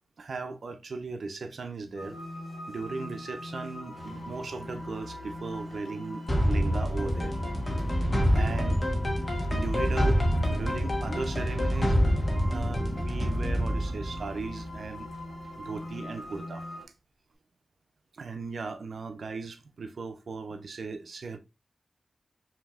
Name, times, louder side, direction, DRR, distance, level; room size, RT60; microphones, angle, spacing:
voice 1, 0.2-2.2 2.7-7.3 8.3-8.9 9.5-12.0 12.4-15.1 15.6-16.7 18.1-21.4, right 4 dB, 70° right, 0.5 m, -37 dB
sound 1, 2.0-16.8, left 1 dB, 45° left, 1.7 m, -41 dB
sound 2, 6.3-15.1, equal, 30° left, 1.2 m, -27 dB
5.2 x 2.8 x 2.4 m
wide cardioid pair, 90°, 0 cm